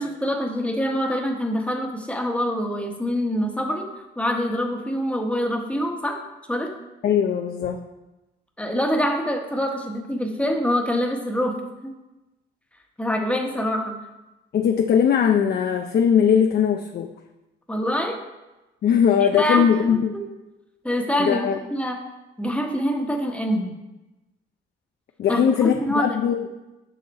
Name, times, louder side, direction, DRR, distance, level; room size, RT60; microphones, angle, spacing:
voice 1, 0.0-6.2 6.5-6.7 8.6-11.9 13.0-14.0 17.7-18.2 19.2-20.2 20.8-22.0 22.4-23.8 25.3-26.2, equal, 5° left, 2 dB, 1.1 m, -25 dB
voice 2, 7.0-7.8 14.5-17.1 18.8-20.1 21.2-21.6 25.2-26.4, left 8 dB, 50° left, 5 dB, 0.5 m, -20 dB
6.9 x 5.9 x 4.2 m, 1.0 s
cardioid pair, 90°, 20 cm